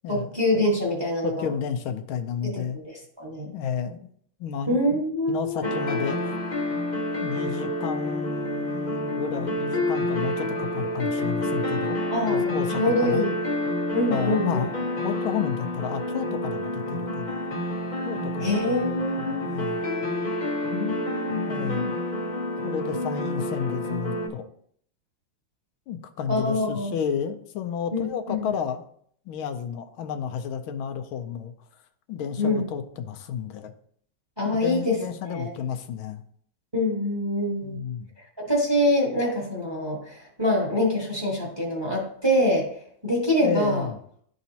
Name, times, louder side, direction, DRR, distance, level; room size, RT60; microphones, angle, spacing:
voice 1, 0.1-1.5 2.4-3.5 4.7-5.7 12.1-13.4 13.9-14.6 18.4-19.5 20.7-21.9 26.3-26.9 27.9-28.5 32.4-32.7 34.4-34.9 35.2-35.5 36.7-37.8 38.4-42.7 43.0-43.9, left 1 dB, 15° right, -2 dB, 1.2 m, -25 dB
voice 2, 1.2-2.8 3.5-4.0 4.4-4.8 5.3-6.2 7.2-13.2 14.1-14.7 15.0-17.4 18.0-18.7 19.4-19.8 21.5-21.9 22.6-24.5 25.9-28.8 29.3-31.5 32.1-33.7 34.5-36.2 37.6-38.1 43.4-43.9, left 7 dB, 85° left, 7 dB, 1.5 m, -31 dB
sound 1, 5.6-24.3, left 1 dB, 45° left, 0.5 m, -29 dB
11.5 x 4.1 x 2.8 m, 0.63 s
omnidirectional pair, 2.2 m